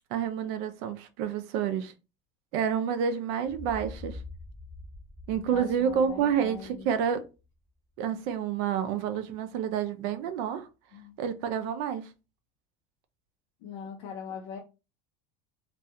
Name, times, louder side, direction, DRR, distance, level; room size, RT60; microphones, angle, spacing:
voice 1, 0.1-1.9 2.5-4.2 5.3-7.3 8.0-10.7 11.2-12.1, right 8 dB, 60° right, 0.4 m, -29 dB
sound 1, 3.4-7.3, left 2 dB, 5° left, 1.1 m, -45 dB
voice 2, 5.5-6.9 10.9-11.1 13.6-14.6, left 6 dB, 60° left, 0.5 m, -41 dB
2.4 x 2.2 x 2.7 m
cardioid pair, 160°, 17 cm